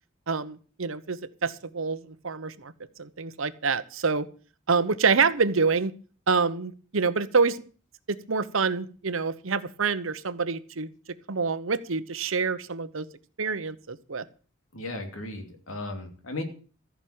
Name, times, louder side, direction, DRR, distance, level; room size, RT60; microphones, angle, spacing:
voice 1, 0.3-2.7 3.0-4.3 4.7-5.9 6.3-7.6 8.1-10.9 11.3-13.1 13.4-14.2, right 5 dB, 80° right, 14 dB, 1.0 m, -26 dB
voice 2, 14.7-16.4, left 2 dB, 85° left, 5 dB, 2.9 m, -36 dB
14.5 x 6.1 x 8.7 m, 0.41 s
head